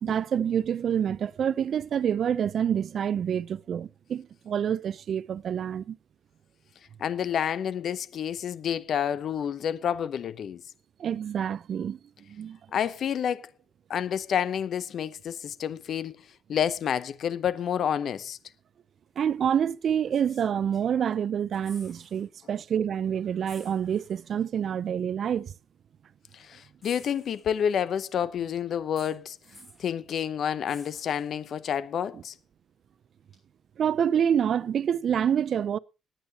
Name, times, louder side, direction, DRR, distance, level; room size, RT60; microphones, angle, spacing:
voice 1, 0.0-6.0 11.0-12.0 12.3-12.6 19.2-25.5 32.1-32.2 33.8-35.8, right 8 dB, 60° right, 0.5 m, -27 dB
voice 2, 7.0-10.6 12.7-13.5 13.9-16.2 16.5-18.4 26.3-29.4 29.8-32.3, left 8 dB, 65° left, 0.7 m, -29 dB
sound 1, 19.2-19.3 20.0-21.1 21.4-22.3 22.6-22.7 23.4-24.3 25.3-25.4 26.8-27.9 29.0-29.9 30.7-31.6 33.3-33.4, left 1 dB, 20° left, 6.7 m, -53 dB
20.0 x 9.0 x 2.9 m
cardioid pair, 90°, 0 cm